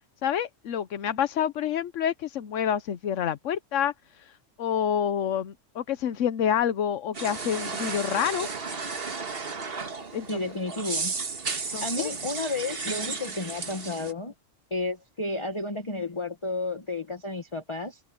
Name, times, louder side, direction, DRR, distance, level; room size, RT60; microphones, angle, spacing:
voice 1, 0.2-8.5 10.1-10.4 11.7-12.1, left 9 dB, 75° left, 1.1 m, -28 dB
sound 1, 7.1-14.1, right 4 dB, 50° right, 1.8 m, -34 dB
voice 2, 10.3-11.1 11.6-14.3 14.7-18.0, left 2 dB, 25° left, 1.4 m, -32 dB
omnidirectional pair, 1.3 m